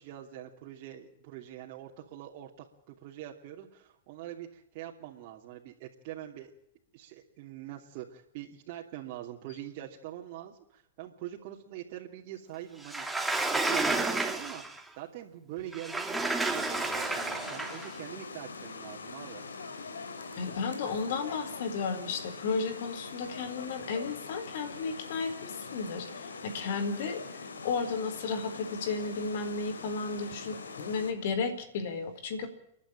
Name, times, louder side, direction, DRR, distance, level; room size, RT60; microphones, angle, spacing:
voice 1, 0.0-6.5 6.9-13.1 13.3-19.4, right 12 dB, 55° right, -2 dB, 2.8 m, -44 dB
Sliding door, 12.8-14.8 15.7-17.9, right 2 dB, 5° right, 2.9 m, -31 dB
sound 1, 16.4-31.1, left 4 dB, 85° left, 2.8 m, -43 dB
voice 2, 20.4-27.2 27.6-32.5, left 4 dB, 65° left, 12 dB, 4.2 m, -33 dB
30.0 x 11.5 x 8.9 m, 0.77 s
hypercardioid pair, 105°, 0 cm